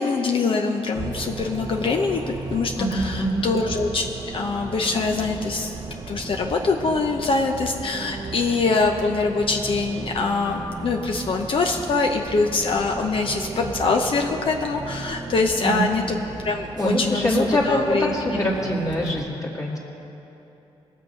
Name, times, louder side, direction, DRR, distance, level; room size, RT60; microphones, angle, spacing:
voice 1, 0.0-4.1 4.3-5.7 6.1-18.5, left 3 dB, 55° left, 2 dB, 0.7 m, -24 dB
Bus, 1.0-19.2, right 3 dB, 40° right, 0.7 m, -35 dB
voice 2, 2.8-3.5 15.6-15.9 16.8-19.8, equal, 30° left, -4 dB, 2.1 m, -24 dB
19.5 x 6.5 x 5.5 m, 3.0 s
cardioid pair, 85°, 11 cm